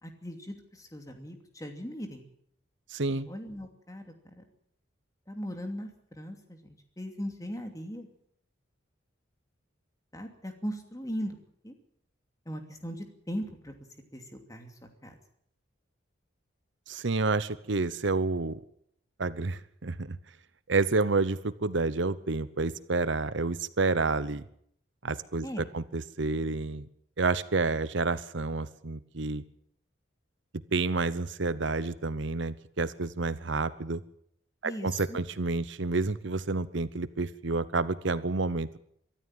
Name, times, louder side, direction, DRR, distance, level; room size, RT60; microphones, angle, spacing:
voice 1, 0.0-2.2 3.1-4.4 5.3-8.1 10.1-11.4 11.6-11.7 12.5-13.7 14.1-15.1 25.4-25.6 34.6-35.2, equal, 15° left, 5 dB, 2.7 m, -39 dB
voice 2, 2.9-3.3 16.9-18.6 19.2-20.2 20.7-24.4 25.0-26.9 27.2-29.4 30.7-34.0 34.6-38.8, right 3 dB, 65° right, 15 dB, 0.9 m, -29 dB
24.0 x 13.0 x 9.1 m, 0.70 s
head